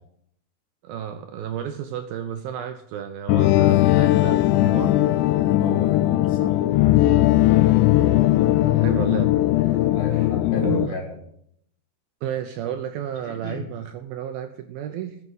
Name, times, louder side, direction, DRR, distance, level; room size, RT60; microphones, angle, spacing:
voice 1, 0.8-5.0 7.1-8.2 8.6-10.4 10.6-11.0 12.2-15.2, right 9 dB, 80° right, 7 dB, 2.3 m, -33 dB
sound 1, 3.3-10.9, left 15 dB, 85° left, 2.9 m, -18 dB
voice 2, 5.4-6.6 9.9-11.1 13.3-13.6, left 1 dB, 25° left, -1 dB, 3.9 m, -35 dB
13.5 x 7.2 x 8.0 m, 0.69 s
omnidirectional pair, 5.0 m